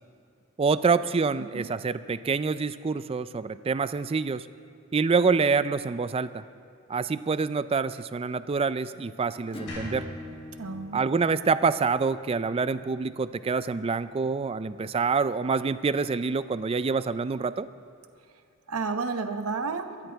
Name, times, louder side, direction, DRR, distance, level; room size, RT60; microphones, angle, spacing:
voice 1, 0.6-4.5 4.9-6.4 6.9-10.0 10.9-17.7, right 4 dB, 25° right, 14 dB, 0.3 m, -26 dB
Acoustic guitar / Strum, 9.5-14.8, left 1 dB, 25° left, 1.2 m, -45 dB
sound 1, 9.7-12.8, left 1 dB, 65° left, 3.6 m, -44 dB
voice 2, 10.6-11.0 18.7-20.1, right 4 dB, 70° right, 7 dB, 0.9 m, -31 dB
23.0 x 13.0 x 3.5 m, 2.4 s
head